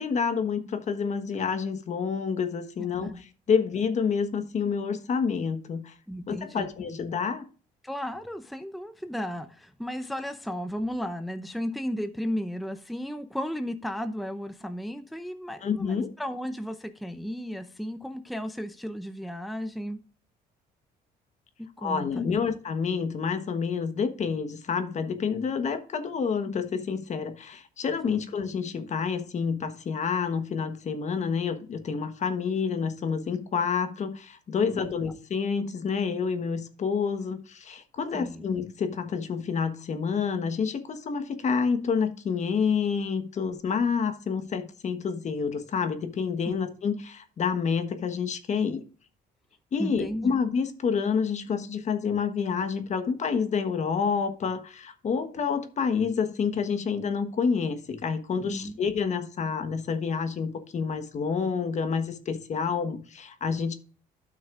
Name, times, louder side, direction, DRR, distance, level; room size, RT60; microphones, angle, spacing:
voice 1, 0.0-5.9 6.3-7.4 15.6-16.1 21.8-48.8 49.7-63.7, left 6 dB, 45° left, 1.3 m, -28 dB
voice 2, 6.1-6.7 7.8-20.0 21.6-22.4 28.1-28.2 34.6-34.9 38.1-38.4 46.4-46.6 49.8-50.3 58.4-58.8, equal, ahead, 0.7 m, -34 dB
12.5 x 6.2 x 2.5 m
cardioid pair, 110°, 17 cm